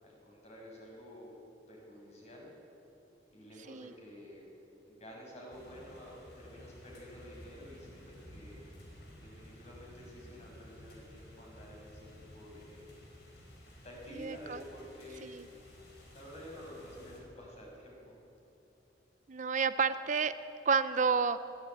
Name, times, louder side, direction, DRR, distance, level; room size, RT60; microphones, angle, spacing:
voice 1, 0.0-1.3 1.7-2.5 3.3-4.4 4.8-8.6 9.2-12.8 13.8-15.3 16.1-18.1, equal, 40° left, -2 dB, 6.4 m, -50 dB
sound 1, 5.5-17.2, equal, 65° left, 4.7 m, -54 dB
voice 2, 14.2-14.6 15.2-15.4 19.3-20.3 20.7-21.4, right 5 dB, 45° right, 12 dB, 0.5 m, -30 dB
21.0 x 15.5 x 8.8 m, 2.9 s
head